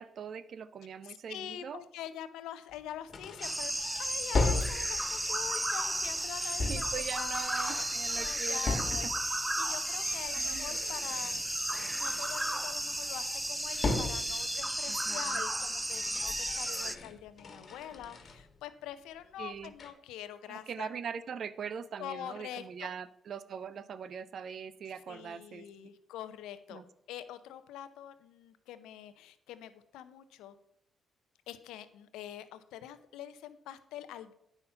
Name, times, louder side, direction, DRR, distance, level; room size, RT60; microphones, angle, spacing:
voice 1, 0.0-1.8 6.7-8.8 10.3-10.8 14.9-15.4 19.4-19.7 20.5-25.6 26.7-26.8, right 7 dB, 60° right, 15 dB, 0.5 m, -41 dB
voice 2, 1.0-3.7 4.0-7.9 8.1-11.6 11.9-20.9 22.0-22.9 25.1-26.8 27.1-30.5 31.5-34.3, left 11 dB, 85° left, 12 dB, 0.6 m, -45 dB
sound 1, 2.7-2.8 3.1-9.4 9.7-12.7 13.0-15.5 15.8-18.6 18.9-19.0 19.6-19.9, left 3 dB, 55° left, 1.3 m, -38 dB
sound 2, 3.4-17.0, right 1 dB, 10° right, 0.5 m, -34 dB
sound 3, 3.5-8.9, right 3 dB, 90° right, 2.1 m, -59 dB
9.1 x 5.7 x 5.6 m, 0.79 s
supercardioid pair, 60°, 0 cm